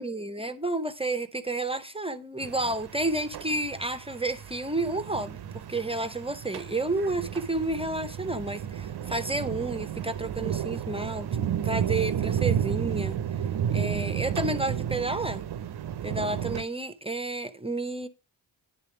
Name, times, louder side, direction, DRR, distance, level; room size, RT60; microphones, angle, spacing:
voice 1, 0.0-13.2 13.7-15.4 16.0-18.1, right 2 dB, 10° right, 0.6 m, -31 dB
sound 1, 2.4-16.6, right 9 dB, 50° right, 0.6 m, -32 dB
10.0 x 3.5 x 6.9 m
cardioid pair, 60°, 49 cm